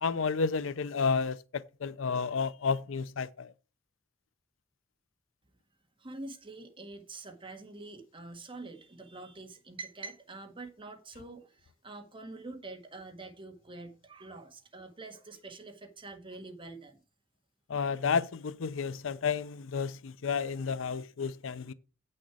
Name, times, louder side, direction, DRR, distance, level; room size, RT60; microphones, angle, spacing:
voice 1, 0.0-3.5 17.7-21.7, left 5 dB, 85° left, 0.5 m, -31 dB
voice 2, 6.0-17.0, right 3 dB, 25° right, 1.7 m, -46 dB
8.5 x 6.4 x 4.8 m
head